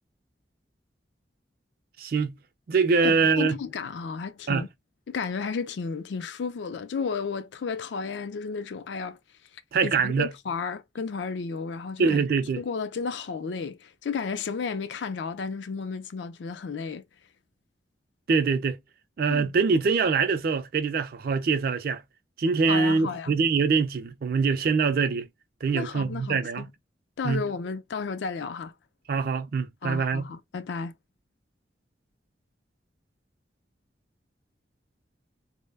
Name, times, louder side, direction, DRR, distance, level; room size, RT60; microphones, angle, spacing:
voice 1, 2.0-2.4 2.7-3.6 4.5-4.6 9.7-10.3 12.0-12.6 18.3-18.8 19.2-22.0 22.4-25.3 25.6-26.7 27.2-27.4 29.1-30.3, right 5 dB, 55° right, 0.4 m, -24 dB
voice 2, 3.0-4.7 5.1-9.2 9.8-12.2 12.6-17.0 19.3-19.5 22.7-23.3 25.7-26.7 27.2-28.7 29.8-30.9, left 5 dB, 80° left, 0.4 m, -33 dB
2.1 x 2.1 x 3.3 m
head